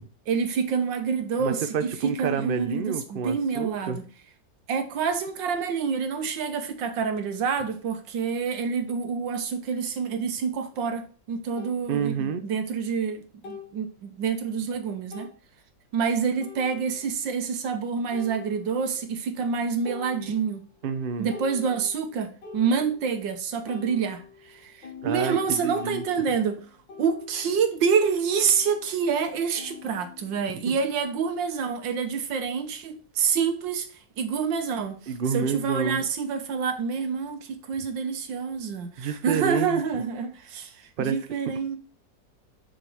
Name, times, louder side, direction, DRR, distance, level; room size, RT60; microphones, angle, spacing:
voice 1, 0.3-4.0 4.7-15.3 15.9-20.6 21.2-26.6 27.0-33.9 34.2-35.0 35.3-40.7 41.1-41.8, right 6 dB, 85° right, 1.8 m, -27 dB
voice 2, 1.4-4.0 11.9-12.4 20.8-21.3 25.0-26.0 30.7-30.8 35.1-36.0 39.0-39.8 41.0-41.2, right 6 dB, 50° right, 0.6 m, -29 dB
sound 1, 10.7-10.8 11.6-11.8 13.4-13.8 14.4-14.5 15.1-15.4 16.4-17.0 18.1-19.0 19.4-19.6 19.8-20.7 21.1-23.2 23.7-28.0 28.3-30.6, left 5 dB, 85° left, 2.5 m, -45 dB
6.4 x 6.1 x 3.5 m
omnidirectional pair, 1.9 m